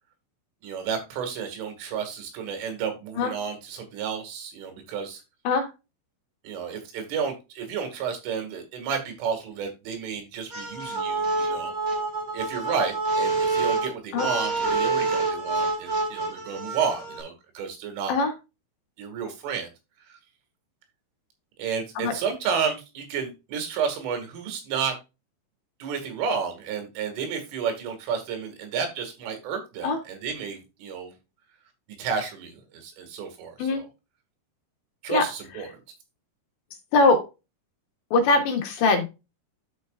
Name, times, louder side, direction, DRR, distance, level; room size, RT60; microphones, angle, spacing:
voice 1, 0.6-5.2 6.4-11.7 12.3-18.1 19.0-19.7 20.1-20.2 21.6-25.0 25.8-31.1 32.0-33.9 35.0-35.7, right 6 dB, 85° right, 5 dB, 4.7 m, -31 dB
sound 1, 10.5-17.2, right 3 dB, 35° right, 2.2 m, -27 dB
voice 2, 38.1-39.1, left 3 dB, 70° left, 4 dB, 3.8 m, -21 dB
13.0 x 5.2 x 2.4 m, 0.26 s
omnidirectional pair, 5.5 m